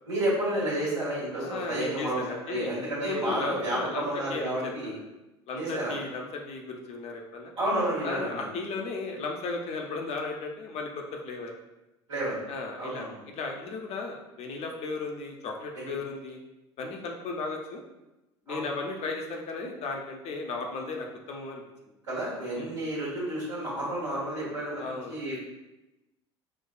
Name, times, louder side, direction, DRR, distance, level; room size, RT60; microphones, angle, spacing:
voice 1, 0.0-5.0 5.6-5.9 7.6-8.5 12.1-12.5 12.8-13.2 15.7-15.9 18.5-18.6 22.1-25.4, right 1 dB, 85° right, -9 dB, 1.3 m, -31 dB
voice 2, 1.4-2.7 3.0-4.7 5.5-7.5 8.0-11.5 12.5-16.4 16.8-17.8 18.5-21.6 22.5-22.8 24.8-25.2, left 3 dB, 45° left, 2 dB, 0.6 m, -35 dB
4.6 x 2.3 x 2.2 m, 0.99 s
figure-of-eight pair, 65°, 15 cm